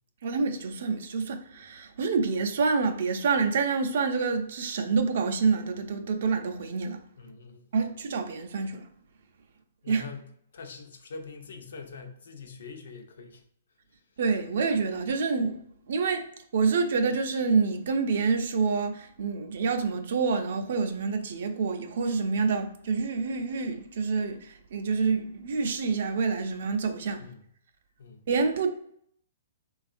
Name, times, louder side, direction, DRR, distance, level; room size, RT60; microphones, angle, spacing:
voice 1, 0.2-7.0 7.7-8.8 9.9-10.0 14.2-15.6 15.9-16.2 16.5-27.2 28.3-28.7, right 4 dB, 60° right, 0.4 m, -27 dB
voice 2, 7.2-7.7 9.8-10.3 10.5-13.4 27.2-27.5 28.0-28.2, left 4 dB, 75° left, 0.6 m, -43 dB
3.5 x 2.3 x 2.5 m
hypercardioid pair, 165°, 0 cm